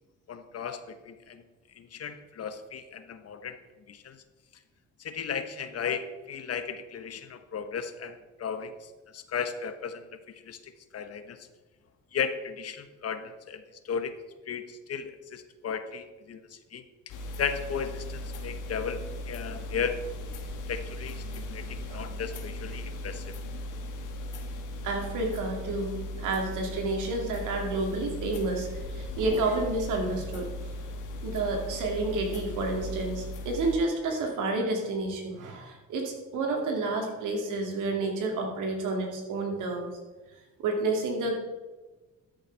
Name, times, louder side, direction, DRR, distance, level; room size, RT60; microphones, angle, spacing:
voice 1, 0.3-1.4 1.8-3.6 3.9-4.2 5.0-10.2 10.4-11.4 12.1-14.1 14.5-16.8 17.4-19.0 19.3-20.0 20.7-23.2, left 6 dB, 55° left, 9 dB, 1.1 m, -35 dB
sound 1, 17.1-33.8, left 1 dB, 85° left, 1.6 m, -38 dB
voice 2, 24.8-30.8 31.2-39.9 40.6-41.3, right 2 dB, 85° right, 2 dB, 2.4 m, -30 dB
13.0 x 6.6 x 4.6 m, 1.2 s
cardioid pair, 90°, 30 cm